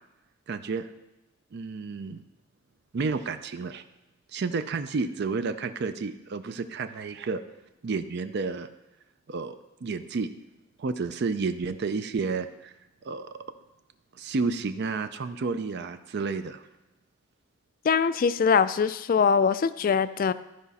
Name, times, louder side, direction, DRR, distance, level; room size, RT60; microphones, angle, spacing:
voice 1, 0.5-0.8 1.5-2.2 2.9-3.8 4.3-7.4 7.8-8.7 9.3-9.6 9.8-10.3 10.8-12.7 13.0-13.4 14.1-16.6, right 4 dB, 55° right, 10 dB, 0.4 m, -31 dB
voice 2, 17.8-20.3, left 6 dB, 45° left, 14 dB, 0.3 m, -22 dB
13.5 x 5.0 x 4.1 m, 1.0 s
head